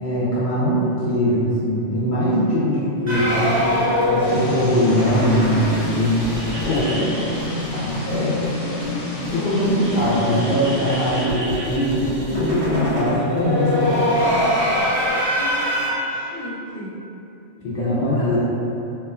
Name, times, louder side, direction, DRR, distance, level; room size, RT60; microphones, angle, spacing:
voice 1, 0.0-3.7 4.1-6.3 6.6-7.4 7.7-8.3 9.3-14.4 17.6-18.4, equal, 60° left, -10 dB, 0.5 m, -21 dB
voice 2, 2.0-2.7 3.5-3.8 8.5-9.3 9.9-11.7 15.2-17.0 17.6-18.4, left 1 dB, 75° right, -10 dB, 1.2 m, -33 dB
sound 1, 3.1-8.2 8.4-8.5 8.8-8.9 9.2-15.9, equal, 35° right, 0.8 m, -24 dB
sound 2, 4.2-11.2, left 2 dB, 85° left, 0.9 m, -29 dB
2.8 x 2.2 x 2.3 m, 2.9 s
omnidirectional pair, 1.2 m